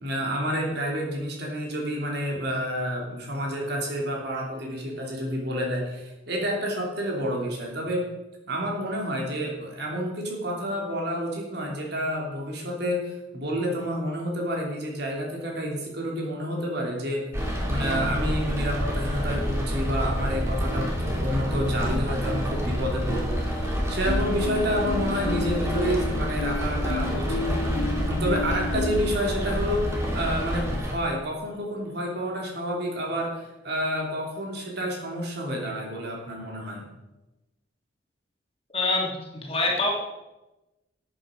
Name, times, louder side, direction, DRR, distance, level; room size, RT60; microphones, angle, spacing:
voice 1, 0.0-8.0 8.5-17.3 17.7-27.4 28.0-33.3 33.6-36.8, equal, 55° right, -1 dB, 3.2 m, -29 dB
Rain, 17.3-30.9, equal, 15° right, 2.7 m, -28 dB
sound 1, 24.1-29.2, left 4 dB, 85° left, 0.4 m, -33 dB
voice 2, 38.7-39.9, left 2 dB, 30° left, -2 dB, 2.7 m, -25 dB
13.5 x 8.9 x 5.2 m, 1.0 s
head